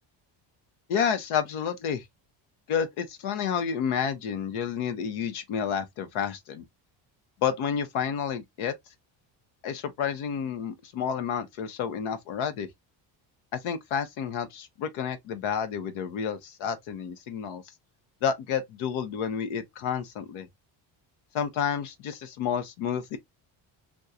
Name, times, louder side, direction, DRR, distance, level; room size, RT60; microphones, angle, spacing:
voice 1, 0.9-2.0 2.7-6.7 7.4-8.7 9.6-12.7 13.5-17.6 18.2-20.5 21.3-23.2, left 7 dB, 85° left, 0.9 m, -30 dB
3.5 x 2.3 x 2.7 m
cardioid pair, 120°, 47 cm